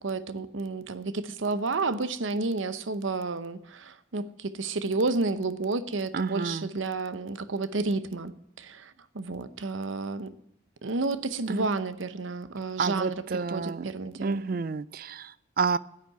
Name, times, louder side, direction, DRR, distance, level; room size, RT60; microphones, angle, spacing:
voice 1, 0.0-10.3 10.8-14.5, right 3 dB, 80° right, 13 dB, 0.8 m, -31 dB
voice 2, 6.1-6.7 11.5-11.7 12.8-13.9 14.2-15.8, right 5 dB, 45° right, 18 dB, 0.4 m, -30 dB
10.5 x 8.3 x 9.5 m, 0.82 s
head